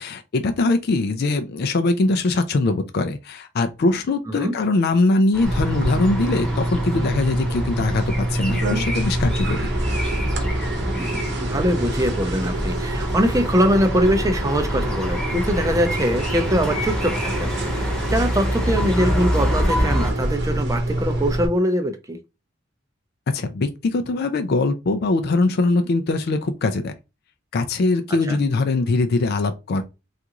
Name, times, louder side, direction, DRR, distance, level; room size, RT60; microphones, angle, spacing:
voice 1, 0.0-9.7 23.3-26.9 27.5-29.8, left 3 dB, 55° left, 0.4 m, -22 dB
sound 1, 5.3-20.1, equal, 5° left, 0.9 m, -27 dB
sound 2, 5.4-21.5, right 1 dB, 60° right, 0.9 m, -27 dB
voice 2, 10.8-22.2 28.3-28.4, equal, 15° right, 0.5 m, -23 dB
3.6 x 2.5 x 2.9 m
head